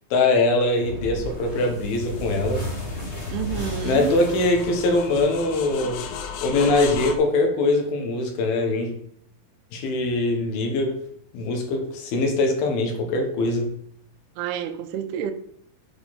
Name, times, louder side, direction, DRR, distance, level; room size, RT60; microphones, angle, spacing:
voice 1, 0.1-2.6 3.8-6.0 6.4-8.9 9.7-11.0 11.3-13.7, left 2 dB, 70° left, 3.2 m, -22 dB
sound 1, 0.8-5.9, left 1 dB, 30° left, 1.2 m, -33 dB
sound 2, 1.5-7.2, left 7 dB, 85° left, 1.7 m, -37 dB
voice 2, 3.3-4.1 14.4-15.3, right 10 dB, 80° right, 2.7 m, -29 dB
9.1 x 5.4 x 4.3 m
omnidirectional pair, 4.7 m